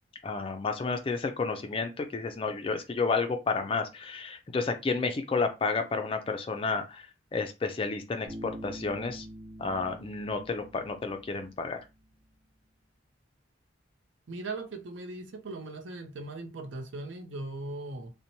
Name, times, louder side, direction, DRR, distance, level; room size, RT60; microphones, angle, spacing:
voice 1, 0.2-7.1 7.3-9.3 9.6-11.8, left 4 dB, 25° left, 0.3 m, -31 dB
Bass guitar, 8.3-12.0, right 1 dB, 40° right, 1.1 m, -45 dB
voice 2, 14.3-18.1, right 2 dB, 65° right, 0.5 m, -39 dB
2.9 x 2.1 x 2.6 m
head